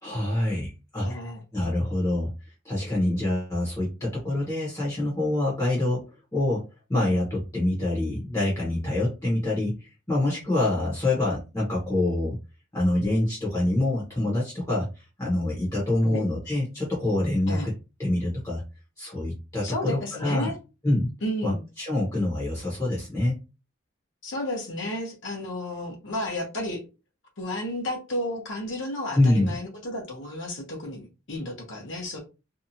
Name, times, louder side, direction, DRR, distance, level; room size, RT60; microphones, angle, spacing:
voice 1, 0.0-1.1 1.5-2.3 2.6-6.1 6.3-6.6 6.9-12.4 12.7-17.7 18.0-18.6 19.0-20.5 20.8-21.1 21.4-23.4 29.1-29.6, left 1 dB, 15° left, 0.9 m, -26 dB
voice 2, 1.0-1.4 16.0-16.2 17.5-17.7 19.6-20.6 21.2-21.6 24.2-26.8 27.4-32.2, left 1 dB, 60° left, 0.9 m, -32 dB
2.7 x 2.3 x 2.7 m
head